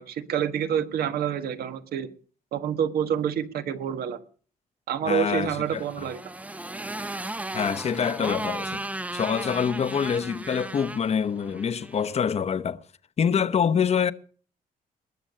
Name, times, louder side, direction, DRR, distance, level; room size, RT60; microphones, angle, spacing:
voice 1, 0.0-2.1 2.5-4.2 4.9-6.3, right 8 dB, 80° right, 1.5 m, -28 dB
voice 2, 5.0-5.8 7.5-8.8 9.1-12.8 13.2-14.1, left 7 dB, 45° left, 0.8 m, -25 dB
Motorcycle, 5.7-12.1, right 1 dB, 10° right, 0.6 m, -35 dB
20.5 x 7.0 x 7.5 m
cardioid pair, 105°, 16 cm